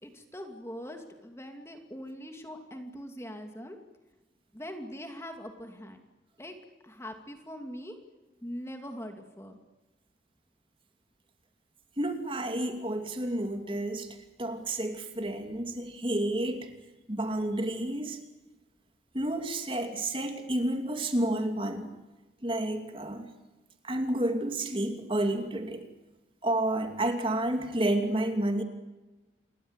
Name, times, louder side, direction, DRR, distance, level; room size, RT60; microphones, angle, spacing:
voice 1, 0.0-3.8 4.5-6.0 6.4-6.6 6.8-8.0 8.4-9.6, equal, 15° left, 4 dB, 2.5 m, -42 dB
voice 2, 12.0-16.7 17.1-18.2 19.1-21.9 22.4-23.3 23.8-25.8 26.4-28.6, right 1 dB, 30° right, 5 dB, 2.8 m, -30 dB
28.5 x 22.5 x 8.2 m, 1.1 s
head